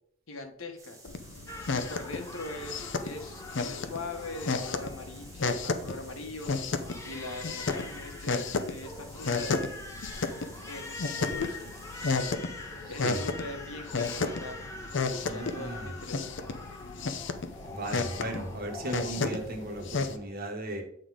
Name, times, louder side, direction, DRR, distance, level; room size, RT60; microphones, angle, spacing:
voice 1, 0.3-1.0 1.7-6.5 7.0-9.7 10.7-11.7 12.0-12.4 12.9-14.6 14.9-16.5 16.8-17.1, left 2 dB, 85° left, 4 dB, 1.4 m, -42 dB
sound 1, 0.8-12.2, right 3 dB, 15° right, 1.4 m, -54 dB
sound 2, 1.0-20.1, left 3 dB, 65° left, 0.7 m, -33 dB
Crying sobbing, 1.5-20.3, left 2 dB, 15° left, 1.1 m, -44 dB
voice 2, 15.2-15.9 17.7-20.8, right 1 dB, 45° right, 4 dB, 1.3 m, -36 dB
8.6 x 3.8 x 4.9 m, 0.67 s
head